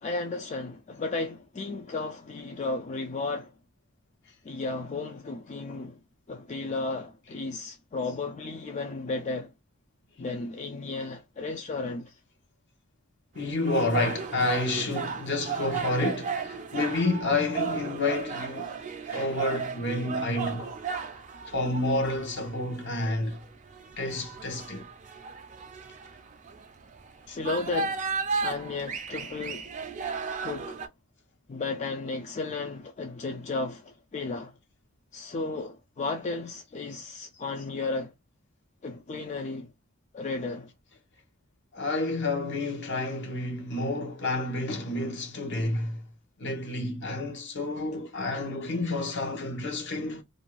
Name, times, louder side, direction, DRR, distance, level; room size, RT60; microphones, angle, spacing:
voice 1, 0.0-3.5 4.4-6.0 6.3-9.5 10.2-12.2 27.4-28.1 28.4-29.7 30.4-30.8 31.5-34.5 35.1-38.1 38.8-39.7 40.1-40.7, left 3 dB, 35° left, 0.4 m, -34 dB
voice 2, 13.3-18.8 19.0-20.8 21.5-23.4 24.0-24.9 27.3-27.4 41.7-46.1 46.4-50.2, left 2 dB, 60° left, 0.9 m, -29 dB
sound 1, 13.4-30.9, right 5 dB, 35° right, 0.4 m, -35 dB
2.6 x 2.2 x 3.0 m
head